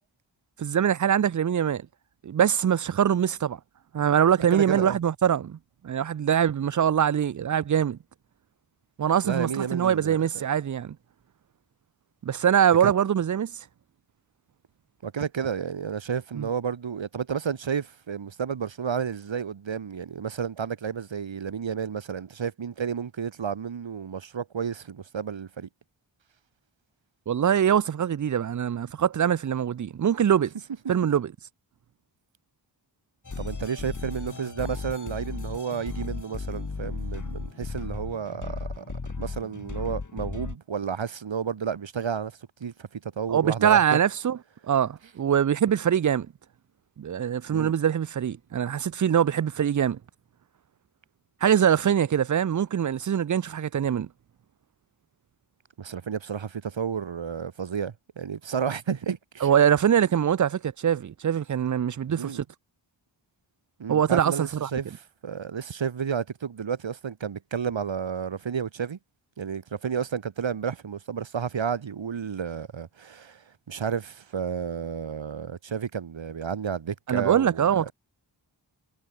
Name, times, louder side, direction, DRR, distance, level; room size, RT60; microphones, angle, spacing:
voice 1, 0.6-1.8 2.2-3.6 3.9-5.6 5.8-8.0 9.0-11.0 12.2-13.5 16.4-16.5 27.3-30.5 30.9-31.3 43.3-44.4 44.7-46.3 47.0-50.0 51.4-54.1 59.4-62.4 63.9-64.7 77.1-77.9, right 9 dB, 45° right, 0.4 m, -23 dB
voice 2, 4.5-5.0 9.2-10.3 12.8-12.9 15.0-25.7 33.4-38.9 39.2-42.3 42.6-44.0 47.5-47.7 55.8-59.5 62.1-62.4 63.8-69.0 69.4-77.9, right 7 dB, 80° right, 1.2 m, -31 dB
sound 1, 33.2-40.6, left 4 dB, 40° left, 1.7 m, -35 dB
wide cardioid pair, 70°, 45 cm